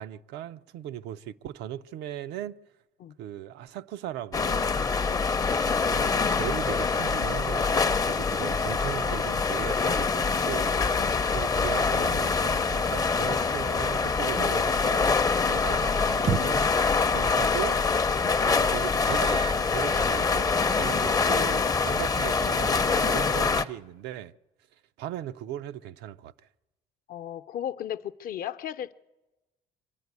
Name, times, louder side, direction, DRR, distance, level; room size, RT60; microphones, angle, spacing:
voice 1, 0.0-2.6 3.2-4.8 5.8-11.0 11.3-15.1 15.4-16.7 17.0-17.8 18.4-20.5 20.7-24.3 25.0-26.3, right 11 dB, 85° right, 0.6 m, -38 dB
sound 1, 4.3-23.6, left 4 dB, 20° left, 0.6 m, -25 dB
voice 2, 11.0-11.3 18.2-18.4 27.1-28.9, left 10 dB, 60° left, 0.7 m, -36 dB
sound 2, 16.1-16.7 17.4-17.7 18.0-18.1 19.0-20.1 20.6-21.0 21.3-21.6 22.1-22.4 22.7-22.8 23.3-24.1, right 7 dB, 40° right, 0.6 m, -35 dB
24.0 x 12.0 x 9.5 m
cardioid pair, 110°, 17 cm